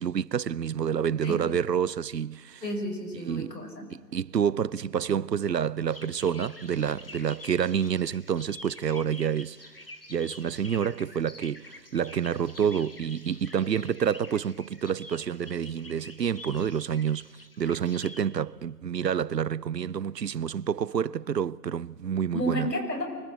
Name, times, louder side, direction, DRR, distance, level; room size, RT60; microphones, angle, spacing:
voice 1, 0.0-2.6 3.2-3.6 3.9-9.6 10.1-17.2 17.6-22.7, right 8 dB, 85° right, 0.8 m, -28 dB
voice 2, 2.6-3.9 22.3-23.0, equal, 90° left, 6.4 m, -31 dB
sound 1, 5.9-18.2, left 2 dB, 35° left, 1.4 m, -47 dB
24.5 x 21.0 x 8.1 m
hypercardioid pair, 180°, 48 cm